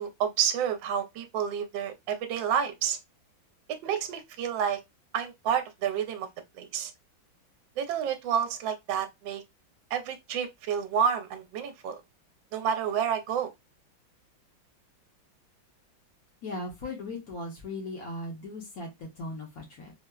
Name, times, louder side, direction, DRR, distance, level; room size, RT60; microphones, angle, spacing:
voice 1, 0.0-3.0 3.8-4.8 5.1-6.3 6.6-6.9 7.8-9.4 9.9-12.0 12.5-13.5, right 8 dB, 75° right, 1.3 m, -29 dB
voice 2, 16.4-19.9, left 2 dB, 60° left, 1.1 m, -38 dB
4.5 x 2.0 x 2.2 m
omnidirectional pair, 2.1 m